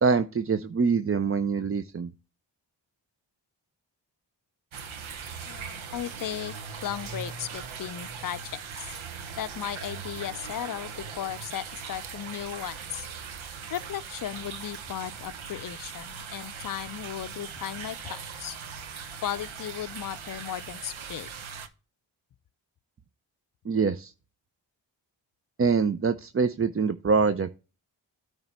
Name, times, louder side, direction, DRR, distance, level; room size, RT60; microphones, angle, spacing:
voice 1, 0.0-2.1 23.6-24.1 25.6-27.5, right 5 dB, 30° right, 0.5 m, -24 dB
sound 1, 4.7-21.7, right 6 dB, 80° right, 1.0 m, -40 dB
voice 2, 5.5-6.5 6.8-8.9 9.4-13.1 13.7-18.6 19.2-21.3, left 11 dB, 45° left, 0.5 m, -36 dB
8.9 x 3.3 x 5.8 m
cardioid pair, 40°, 47 cm